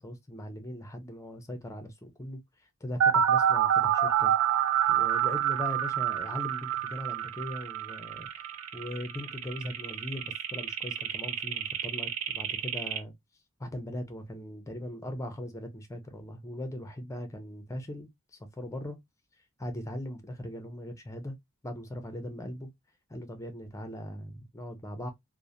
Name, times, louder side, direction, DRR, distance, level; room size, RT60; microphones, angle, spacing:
voice 1, 0.0-2.4 2.8-4.3 4.9-8.5 8.7-13.1 13.6-19.0 19.6-21.4 21.6-22.7 23.1-25.1, left 1 dB, 15° left, 0.5 m, -39 dB
sound 1, 3.0-13.0, right 9 dB, 70° right, 0.5 m, -28 dB
2.9 x 2.1 x 2.4 m
head